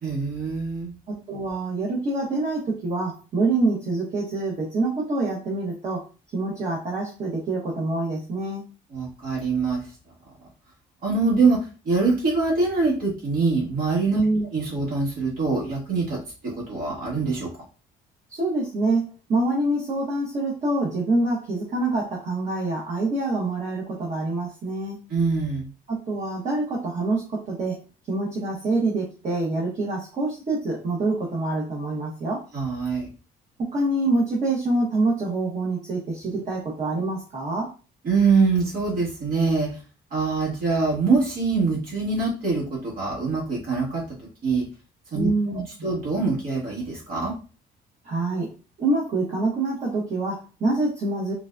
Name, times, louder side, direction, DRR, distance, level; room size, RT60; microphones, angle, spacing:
voice 1, 0.0-0.9 8.9-9.8 11.0-11.6 11.8-14.2 14.5-16.2 16.4-17.5 25.1-25.7 32.5-33.1 38.0-39.7 40.1-44.6 45.1-47.3, right 4 dB, 60° right, -4 dB, 1.6 m, -24 dB
voice 2, 1.1-6.0 6.3-8.6 14.1-14.4 18.3-25.0 25.9-27.8 28.1-32.4 33.6-37.7 45.1-45.7 48.0-48.5 48.8-51.3, right 2 dB, 45° right, -4 dB, 1.1 m, -26 dB
3.8 x 2.2 x 2.5 m, 0.34 s
cardioid pair, 110°, 17 cm